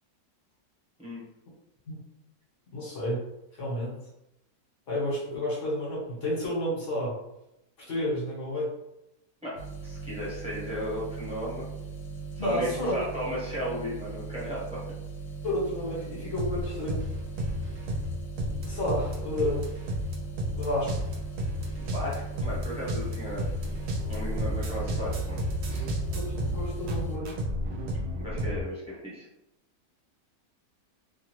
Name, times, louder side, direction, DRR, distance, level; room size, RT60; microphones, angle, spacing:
voice 1, 2.7-3.2 3.6-3.9 4.9-7.2 7.9-8.7 12.4-13.0 15.4-17.0 18.7-19.6 20.6-21.0 26.1-27.3, left 1 dB, 55° left, -4 dB, 1.3 m, -30 dB
voice 2, 9.4-11.7 12.4-14.8 21.8-23.5 24.1-25.4 25.7-25.9 28.2-29.3, equal, 5° right, -8 dB, 0.8 m, -35 dB
sound 1, 9.6-27.2, right 5 dB, 80° left, 1.1 m, -39 dB
sound 2, 16.4-28.6, equal, 70° right, 0.6 m, -32 dB
2.6 x 2.4 x 2.9 m, 0.86 s
omnidirectional pair, 1.6 m